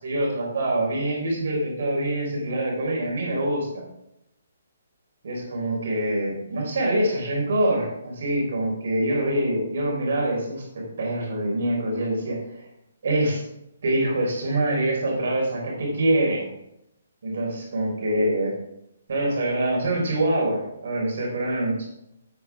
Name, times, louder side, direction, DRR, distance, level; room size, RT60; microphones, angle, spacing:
voice 1, 0.0-3.8 5.2-12.7 13.0-13.4 13.8-16.5 17.2-18.5 19.1-21.9, right 1 dB, 55° right, -2 dB, 4.1 m, -25 dB
12.5 x 8.2 x 3.6 m, 0.83 s
hypercardioid pair, 175°, 0 cm